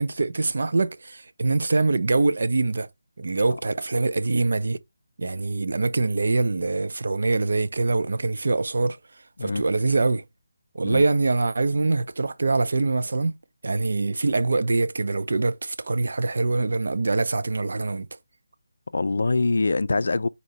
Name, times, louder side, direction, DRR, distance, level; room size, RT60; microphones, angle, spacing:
voice 1, 0.0-2.9 3.2-4.8 5.2-9.0 9.4-10.2 10.7-13.4 13.6-18.1, right 3 dB, 65° right, 0.6 m, -24 dB
voice 2, 18.9-20.3, left 3 dB, 65° left, 0.4 m, -24 dB
4.1 x 2.7 x 4.5 m
figure-of-eight pair, 160°, 0 cm